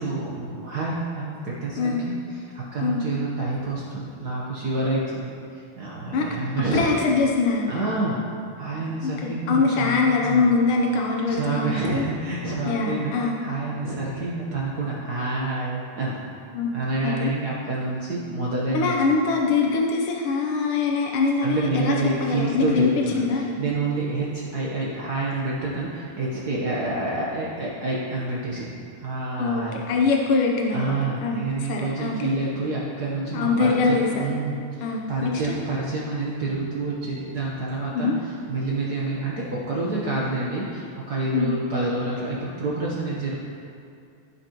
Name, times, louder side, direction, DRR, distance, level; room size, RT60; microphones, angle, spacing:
voice 1, 0.0-6.9 7.7-8.2 8.6-10.5 11.3-16.2 16.7-18.9 21.4-29.8 30.7-43.3, right 2 dB, 85° right, -5 dB, 0.8 m, -28 dB
voice 2, 6.7-7.9 9.0-12.0 12.7-13.4 16.5-16.7 17.0-17.3 18.7-23.6 29.4-31.4 31.7-32.2 33.3-34.3 34.8-35.3 37.9-38.2 41.3-41.5, left 4 dB, 80° left, 0 dB, 1.2 m, -23 dB
16.5 x 5.6 x 3.0 m, 2.4 s
omnidirectional pair, 3.3 m